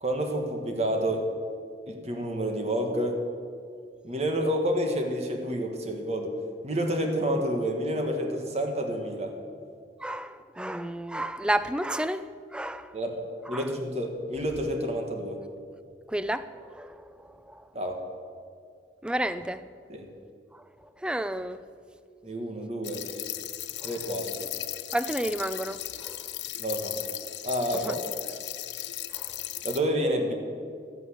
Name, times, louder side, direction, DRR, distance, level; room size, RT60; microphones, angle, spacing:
voice 1, 0.0-1.3 1.9-3.2 4.0-6.3 6.6-9.3 12.9-13.1 13.5-15.4 17.7-18.0 19.9-20.1 22.2-23.0 23.8-24.5 26.6-27.0 27.4-27.9 29.6-30.3, equal, 40° right, 1.7 m, -29 dB
voice 2, 10.0-12.2 12.5-12.9 13.5-13.6 16.1-17.6 19.0-19.7 21.0-21.6 23.8-23.9 24.9-26.2 27.8-27.9 29.1-29.3, right 1 dB, 5° right, 0.3 m, -31 dB
sound 1, 22.8-29.8, left 14 dB, 80° left, 0.6 m, -36 dB
12.5 x 8.9 x 7.9 m
head